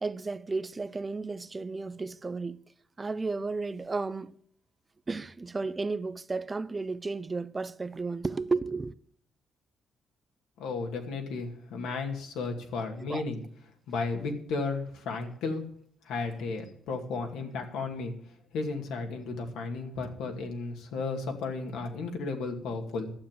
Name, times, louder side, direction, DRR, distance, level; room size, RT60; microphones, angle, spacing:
voice 1, 0.0-2.6 3.0-4.3 5.1-8.9 13.1-13.2, right 3 dB, 25° right, 0.5 m, -33 dB
voice 2, 10.6-13.4 13.9-15.6 16.0-18.1 18.5-23.1, left 3 dB, 90° left, 2.3 m, -34 dB
11.5 x 7.4 x 7.6 m
cardioid pair, 90°, 0 cm